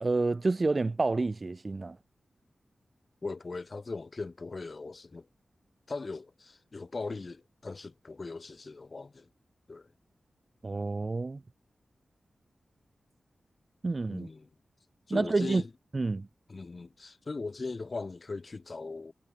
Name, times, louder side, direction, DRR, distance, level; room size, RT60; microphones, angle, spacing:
voice 1, 0.0-2.0 10.6-11.4 13.8-14.3 15.1-15.6 15.9-16.3, right 3 dB, 45° right, 0.3 m, -29 dB
voice 2, 3.2-5.3 5.9-9.3 9.7-9.9 14.1-14.5 15.1-15.7 16.5-19.1, left 3 dB, 50° left, 1.2 m, -39 dB
cardioid pair, 40°, 0 cm